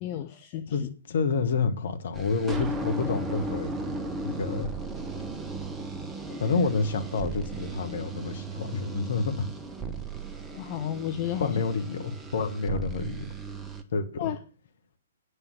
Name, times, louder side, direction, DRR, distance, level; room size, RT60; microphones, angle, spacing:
voice 1, 0.0-0.9 10.5-11.6 14.2-14.4, left 11 dB, 30° left, 0.7 m, -32 dB
voice 2, 0.7-3.7 4.2-4.7 6.3-9.5 11.4-13.3 13.9-14.3, left 4 dB, 50° left, 1.4 m, -28 dB
sound 1, 2.1-13.8, right 3 dB, 10° right, 1.0 m, -36 dB
9.1 x 6.7 x 6.9 m
figure-of-eight pair, 120°, 0 cm